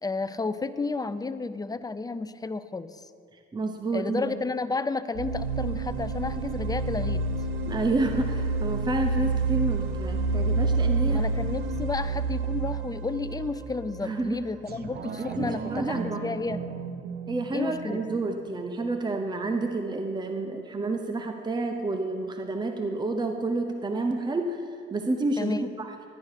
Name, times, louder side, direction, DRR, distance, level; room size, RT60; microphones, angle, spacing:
voice 1, 0.0-3.1 3.9-7.3 11.1-16.6 17.5-18.2 25.4-25.7, left 3 dB, 20° left, 13 dB, 0.5 m, -32 dB
voice 2, 3.5-4.3 7.6-11.2 14.0-14.4 15.2-16.2 17.3-25.9, right 2 dB, 20° right, 4 dB, 0.8 m, -29 dB
sound 1, 5.1-14.9, right 3 dB, 90° right, 0.8 m, -28 dB
sound 2, 14.7-19.7 20.1-20.2, right 6 dB, 55° right, 0.8 m, -38 dB
12.5 x 9.7 x 4.9 m, 2.3 s
cardioid pair, 90°, 20 cm